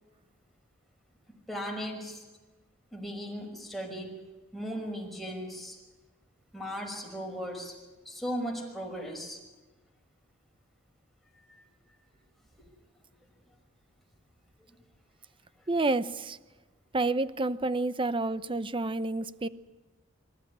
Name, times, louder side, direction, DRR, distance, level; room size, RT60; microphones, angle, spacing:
voice 1, 1.5-2.2 2.9-4.2 4.5-5.8 6.5-7.7 8.1-9.4 11.5-11.6, equal, ahead, 0 dB, 5.8 m, -37 dB
voice 2, 15.7-16.4 16.9-19.5, right 2 dB, 25° right, 15 dB, 0.8 m, -29 dB
25.5 x 15.0 x 10.0 m, 1.2 s
head